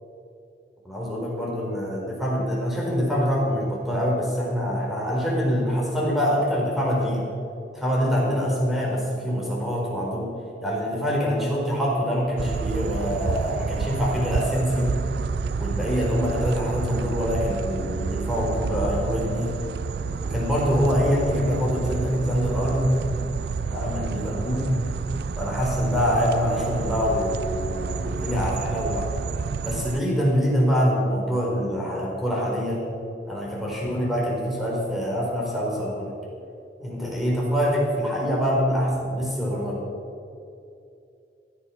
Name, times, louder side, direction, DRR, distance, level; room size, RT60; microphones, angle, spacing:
voice 1, 0.8-7.3 7.7-10.4 10.6-15.0 15.6-19.5 20.2-23.0 23.7-24.8 25.3-29.1 29.6-32.8 33.3-36.1 36.8-39.8, equal, ahead, -4 dB, 4.4 m, -25 dB
sound 1, 12.4-30.0, right 4 dB, 60° right, 0.4 m, -29 dB
16.5 x 13.0 x 6.2 m, 2.6 s
head